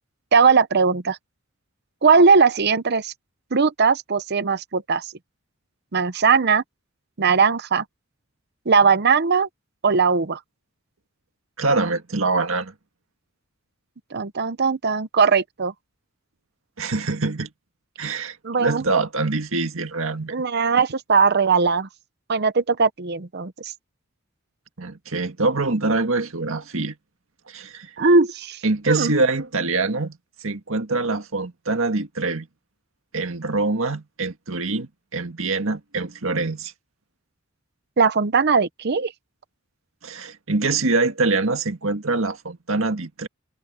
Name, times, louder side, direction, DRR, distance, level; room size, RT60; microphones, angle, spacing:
voice 1, 0.3-1.2 2.0-3.1 3.5-5.1 5.9-6.6 7.2-7.8 8.7-9.5 9.8-10.4 14.1-15.7 18.4-18.8 20.3-21.9 22.3-23.7 28.0-28.6 28.9-29.1 38.0-39.1, right 5 dB, 55° right, 0.8 m, -19 dB
voice 2, 11.6-12.7 16.8-17.5 18.0-20.4 24.8-27.0 27.5-27.9 28.6-30.2 30.4-32.5 33.1-36.7 40.0-43.3, right 3 dB, 75° right, 1.9 m, -24 dB
head